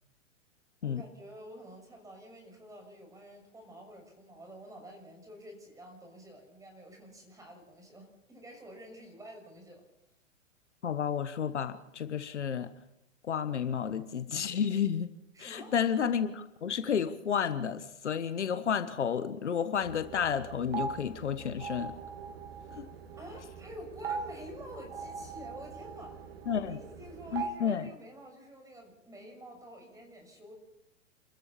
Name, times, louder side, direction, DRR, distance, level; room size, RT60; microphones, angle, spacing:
voice 1, 0.8-9.8 15.3-15.7 23.2-30.5, equal, 10° right, 3 dB, 6.6 m, -49 dB
voice 2, 10.8-12.7 13.3-15.1 15.4-21.9 22.8-22.9 26.5-26.8 27.3-27.9, left 7 dB, 65° left, 11 dB, 1.4 m, -31 dB
sound 1, 19.8-27.5, right 6 dB, 50° right, 2.8 m, -41 dB
29.0 x 14.0 x 7.2 m, 0.89 s
figure-of-eight pair, 110°, 38 cm